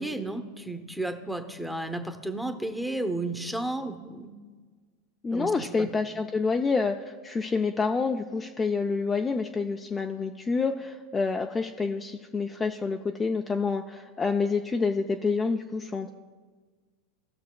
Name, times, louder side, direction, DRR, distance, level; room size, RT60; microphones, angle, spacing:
voice 1, 0.0-4.3 5.3-5.9, right 2 dB, ahead, 7 dB, 0.8 m, -33 dB
voice 2, 5.2-16.1, left 4 dB, 20° left, 4 dB, 0.4 m, -28 dB
17.0 x 6.4 x 2.2 m, 1.5 s
hypercardioid pair, 90°, 0 cm